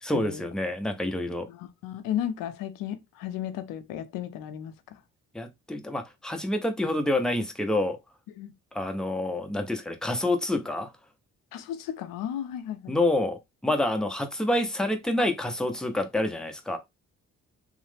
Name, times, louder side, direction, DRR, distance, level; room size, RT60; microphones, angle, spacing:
voice 1, 0.0-1.5 5.3-8.0 8.7-10.9 12.9-16.8, left 1 dB, ahead, 0.6 m, -27 dB
voice 2, 1.5-5.0 8.4-8.5 11.5-12.9, left 10 dB, 85° left, 0.5 m, -34 dB
3.1 x 2.0 x 3.2 m
cardioid pair, 70°, 32 cm